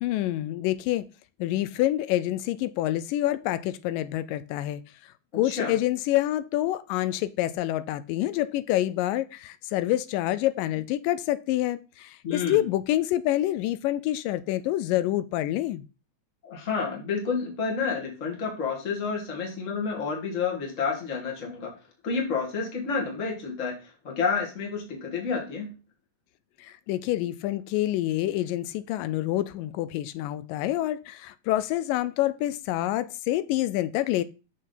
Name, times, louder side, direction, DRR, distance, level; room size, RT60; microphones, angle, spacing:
voice 1, 0.0-1.1 1.4-4.8 5.3-15.8 26.6-34.2, left 14 dB, 85° left, 2.2 m, -27 dB
voice 2, 5.4-5.7 12.2-12.7 16.4-23.8 24.0-25.8, left 5 dB, 30° left, 1.8 m, -30 dB
6.4 x 6.3 x 3.9 m
omnidirectional pair, 3.8 m